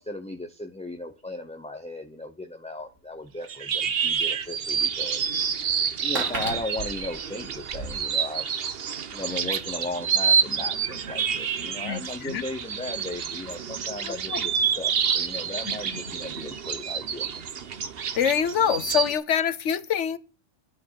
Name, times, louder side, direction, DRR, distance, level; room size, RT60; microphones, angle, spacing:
voice 1, 0.0-5.2 6.0-8.5 9.1-17.3, left 2 dB, 5° left, 0.6 m, -36 dB
sound 1, 2.8-2.9 3.7-3.8 4.1-4.2 5.2-5.3 5.7-7.9, right 2 dB, 80° right, 3.6 m, -34 dB
sound 2, 3.4-19.1, right 7 dB, 55° right, 1.0 m, -28 dB
voice 2, 11.8-12.4 14.0-14.5 15.6-16.1 18.1-20.2, left 8 dB, 70° left, 1.2 m, -26 dB
10.0 x 10.0 x 5.8 m
omnidirectional pair, 1.3 m